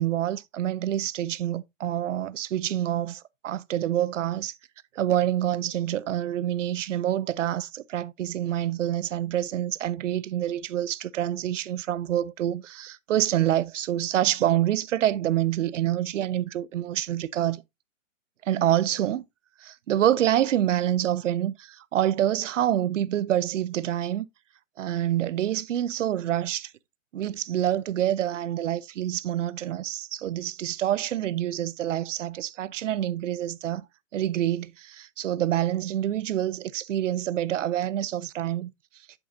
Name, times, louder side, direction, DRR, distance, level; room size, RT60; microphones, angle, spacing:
voice 1, 0.0-4.5 4.9-17.6 18.4-19.2 19.6-24.3 24.8-26.7 27.1-33.9 34.1-38.7, right 12 dB, 65° right, 0.6 m, -27 dB
8.0 x 7.4 x 2.5 m
hypercardioid pair, 140°, 40 cm